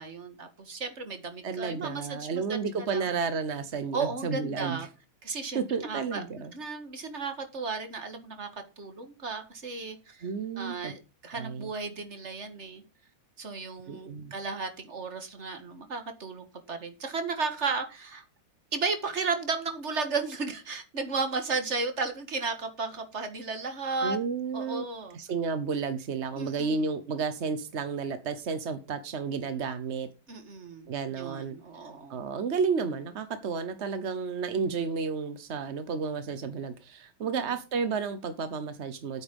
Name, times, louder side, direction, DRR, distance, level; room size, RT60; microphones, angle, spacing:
voice 1, 0.0-3.1 3.9-4.9 5.2-6.2 6.5-8.5 8.8-10.3 10.6-12.8 13.4-18.2 18.7-24.2 24.5-25.2 26.4-26.9 30.3-32.2 37.2-37.5, right 4 dB, 35° right, 7 dB, 1.9 m, -34 dB
voice 2, 1.4-4.9 5.5-6.5 10.2-10.9 11.3-11.7 13.9-14.3 24.0-24.8 25.1-30.1 30.9-31.5 32.1-39.2, right 5 dB, 50° right, 10 dB, 0.8 m, -32 dB
9.6 x 8.9 x 5.3 m, 0.31 s
omnidirectional pair, 2.3 m